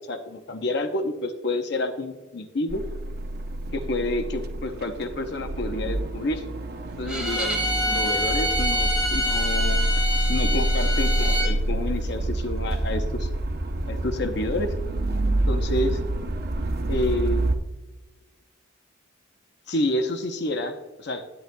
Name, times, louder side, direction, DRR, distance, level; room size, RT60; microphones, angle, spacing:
voice 1, 0.0-2.8 3.7-6.4 7.0-9.8 10.3-13.3 13.9-14.7 15.5-16.0 16.9-17.4 19.7-21.2, left 1 dB, 55° left, 7 dB, 0.7 m, -29 dB
sound 1, 2.7-17.5, right 1 dB, 50° right, 0.7 m, -27 dB
Bowed string instrument, 7.1-11.5, equal, 5° right, 2.3 m, -26 dB
11.0 x 10.5 x 2.2 m, 1.1 s
head